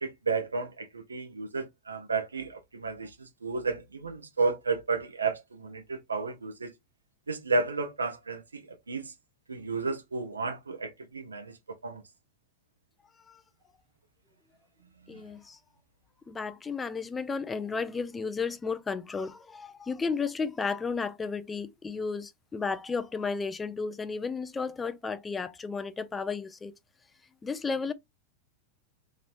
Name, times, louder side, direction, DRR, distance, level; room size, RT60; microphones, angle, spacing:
voice 1, 0.0-6.7 7.3-9.1 9.5-11.5 11.8-12.0 15.1-15.2, right 4 dB, 75° right, 0.7 m, -32 dB
voice 2, 15.1-15.6 16.3-26.7 27.4-27.9, left 5 dB, 15° left, 0.4 m, -33 dB
4.0 x 3.1 x 2.5 m
figure-of-eight pair, 90°, 0 cm